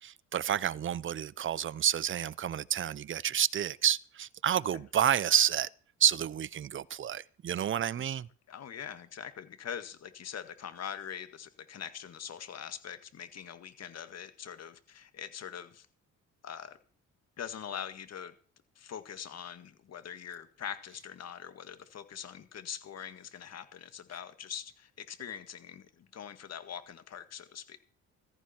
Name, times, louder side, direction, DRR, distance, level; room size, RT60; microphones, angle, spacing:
voice 1, 0.0-5.7 6.0-8.3, right 10 dB, 40° right, 0.6 m, -29 dB
voice 2, 8.5-15.9 16.4-16.8 17.4-18.3 18.8-27.8, left 8 dB, 55° left, 1.9 m, -43 dB
15.0 x 14.5 x 4.5 m
cardioid pair, 90°, 30 cm